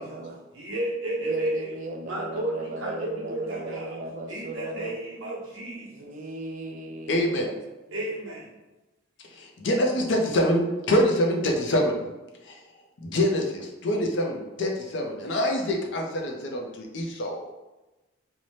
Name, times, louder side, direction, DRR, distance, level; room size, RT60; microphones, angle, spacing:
voice 1, 0.0-0.4 1.2-5.0 5.9-7.6, right 2 dB, 40° right, 3 dB, 0.3 m, -37 dB
voice 2, 0.5-1.7 2.0-4.0 4.3-6.1 7.9-8.6, right 1 dB, 80° right, -3 dB, 0.8 m, -32 dB
voice 3, 7.1-7.5 9.3-12.1 12.4-12.6 13.0-17.5, equal, 60° left, 1 dB, 0.5 m, -25 dB
2.7 x 2.1 x 3.2 m, 1.1 s
head